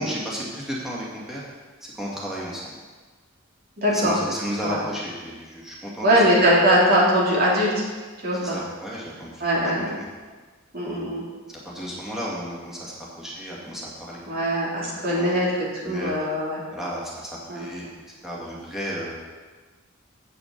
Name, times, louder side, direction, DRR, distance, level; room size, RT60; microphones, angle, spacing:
voice 1, 0.0-1.4 1.8-2.7 3.9-6.2 8.3-10.1 10.8-11.1 11.5-14.4 14.8-15.5 15.8-16.1 16.7-17.9 18.2-19.2, equal, ahead, -6 dB, 2.4 m, -33 dB
voice 2, 3.8-4.1 4.6-4.8 6.0-7.7 8.2-8.6 9.4-9.9 10.7-11.2 14.3-16.6 17.5-17.6, equal, 50° right, -5 dB, 2.8 m, -21 dB
8.3 x 7.0 x 6.8 m, 1.3 s
head